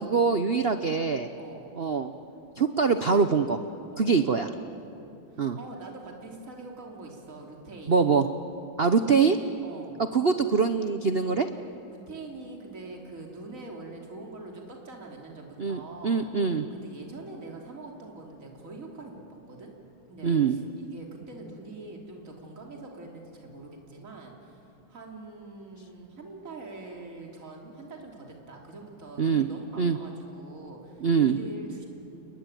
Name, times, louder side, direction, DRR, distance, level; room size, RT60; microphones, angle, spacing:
voice 1, 0.0-1.3 1.8-2.1 2.6-3.6 4.0-4.5 5.4-5.6 7.9-8.3 8.8-9.4 10.1-11.5 15.6-16.6 20.2-20.6 29.2-29.5 29.8-30.0 31.0-31.4, right 5 dB, 80° right, 9 dB, 0.5 m, -23 dB
voice 2, 1.4-1.7 3.9-4.9 5.3-8.0 9.6-10.0 11.9-16.3 16.7-19.2 19.5-19.7 20.1-31.9, right 2 dB, 35° right, 1 dB, 3.5 m, -44 dB
30.0 x 21.5 x 9.1 m, 2.7 s
omnidirectional pair, 2.3 m